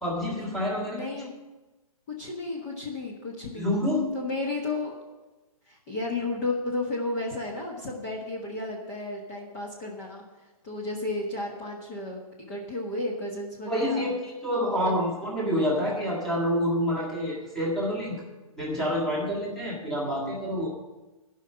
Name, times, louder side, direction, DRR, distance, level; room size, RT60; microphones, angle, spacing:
voice 1, 0.0-1.0 3.5-4.0 13.7-18.2 18.6-20.7, equal, ahead, -5 dB, 1.8 m, -27 dB
voice 2, 0.8-1.4 2.1-3.7 4.1-4.9 5.7-10.2 10.6-14.0 14.5-15.0, left 2 dB, 25° left, -1 dB, 1.5 m, -33 dB
12.0 x 5.6 x 8.9 m, 1.1 s
hypercardioid pair, 165°, 18 cm